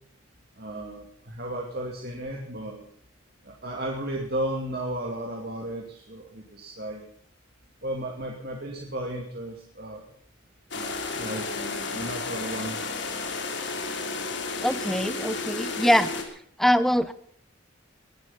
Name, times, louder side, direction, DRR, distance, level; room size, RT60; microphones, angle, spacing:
voice 1, 0.6-2.8 3.4-7.1 7.8-10.0 10.7-12.9, right 1 dB, 50° right, -1 dB, 2.6 m, -34 dB
sound 1, 10.7-16.2, left 3 dB, 65° left, 2.9 m, -32 dB
voice 2, 14.6-16.1 16.6-17.1, equal, ahead, 14 dB, 0.7 m, -23 dB
19.5 x 11.0 x 5.8 m, 0.64 s
head